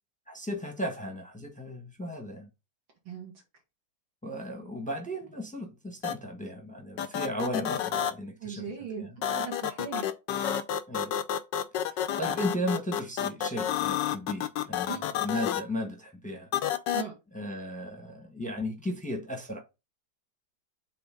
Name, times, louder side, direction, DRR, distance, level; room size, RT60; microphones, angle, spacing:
voice 1, 0.3-2.5 4.2-8.6 9.0-9.2 10.9-11.1 11.9-16.5 17.3-19.6, equal, 5° left, 1.0 m, -35 dB
sound 1, 6.0-6.1 7.0-8.1 9.2-15.6 16.5-17.0, left 10 dB, 70° left, 1.3 m, -29 dB
voice 2, 8.4-10.1 14.9-15.0 16.9-17.1, right 7 dB, 70° right, 2.8 m, -39 dB
7.8 x 3.3 x 3.8 m
omnidirectional pair, 2.2 m